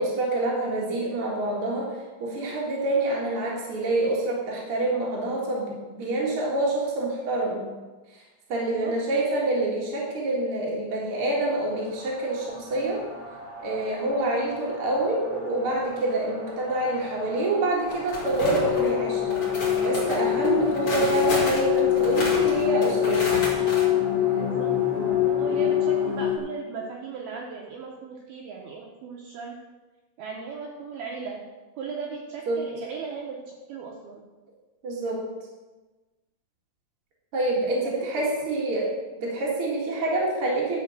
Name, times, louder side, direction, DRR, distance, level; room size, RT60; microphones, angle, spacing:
voice 1, 0.0-7.6 8.5-13.0 13.6-19.5 19.8-23.4 32.5-32.6 34.8-35.2 37.3-38.9 39.2-40.8, right 2 dB, 65° right, -3 dB, 1.3 m, -26 dB
voice 2, 8.6-9.0 24.4-29.6 30.2-31.4 31.8-34.2 37.8-38.4, right 5 dB, 85° right, 0 dB, 2.1 m, -37 dB
sound 1, 11.6-26.2, right 1 dB, 20° right, 0.5 m, -39 dB
sound 2, 17.9-18.9 19.3-23.8, left 1 dB, 35° left, 2.6 m, -32 dB
sound 3, 18.2-26.4, left 12 dB, 75° left, 2.2 m, -24 dB
12.0 x 5.4 x 6.5 m, 1.2 s
omnidirectional pair, 5.7 m